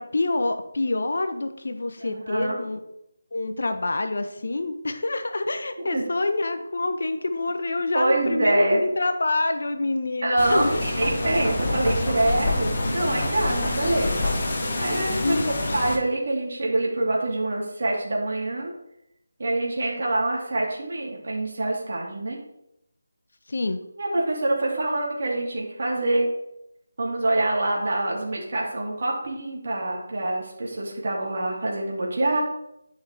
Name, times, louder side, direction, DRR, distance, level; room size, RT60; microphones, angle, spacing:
voice 1, 0.0-2.8 3.3-10.7 11.3-11.5 15.2-15.5 23.5-23.8, left 2 dB, 60° left, 8 dB, 0.8 m, -26 dB
voice 2, 2.0-2.6 5.9-6.0 7.9-8.8 10.2-14.1 14.8-15.4 15.7-18.7 19.4-22.4 24.0-26.3 27.0-32.4, right 2 dB, 55° right, -2 dB, 2.8 m, -25 dB
sound 1, 10.4-16.0, left 2 dB, 40° left, 1.9 m, -28 dB
Knock, 10.6-14.7, left 2 dB, 20° left, 2.6 m, -30 dB
11.0 x 5.9 x 3.4 m, 0.82 s
figure-of-eight pair, 160°, 0 cm